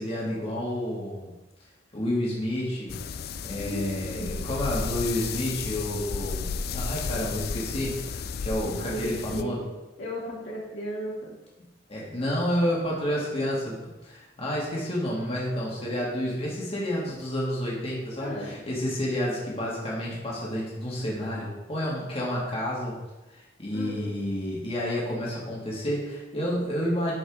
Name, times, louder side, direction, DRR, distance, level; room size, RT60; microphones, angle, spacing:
voice 1, 0.0-1.3 1.9-3.0 3.4-9.6 11.9-23.0 23.3-27.1, equal, 30° left, -5 dB, 2.2 m, -30 dB
sound 1, 2.9-9.4, left 5 dB, 55° left, 0.4 m, -33 dB
voice 2, 3.6-4.4 8.6-9.7 10.0-11.3 18.2-18.5 23.7-24.1, equal, 85° left, -5 dB, 2.8 m, -36 dB
12.0 x 5.4 x 3.7 m, 1.0 s
head